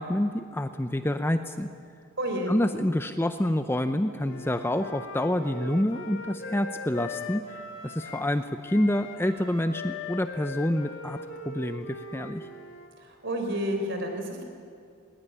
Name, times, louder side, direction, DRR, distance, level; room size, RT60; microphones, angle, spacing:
voice 1, 0.0-1.7 2.5-7.6 7.8-11.2 11.4-12.4, left 1 dB, 10° left, 9 dB, 0.6 m, -27 dB
voice 2, 2.2-2.5 13.0-14.4, equal, 55° right, 4 dB, 4.1 m, -30 dB
Wind instrument woodwind instrument, 4.2-8.3 8.6-12.9, left 3 dB, 55° left, 2.2 m, -40 dB
20.5 x 19.0 x 9.7 m, 2.3 s
head